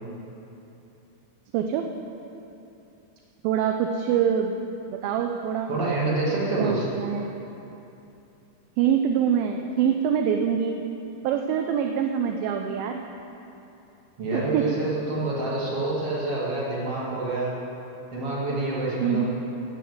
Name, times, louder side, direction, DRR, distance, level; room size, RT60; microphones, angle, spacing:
voice 1, 1.5-1.9 3.4-4.5 4.9-5.7 6.6-7.3 8.8-10.8 11.2-13.0 14.3-14.7 19.0-19.3, right 8 dB, 80° right, 4 dB, 2.3 m, -24 dB
voice 2, 5.7-6.9 14.2-17.5 18.1-19.2, right 2 dB, 45° right, -6 dB, 2.5 m, -27 dB
11.0 x 8.3 x 7.8 m, 2.9 s
omnidirectional pair, 4.5 m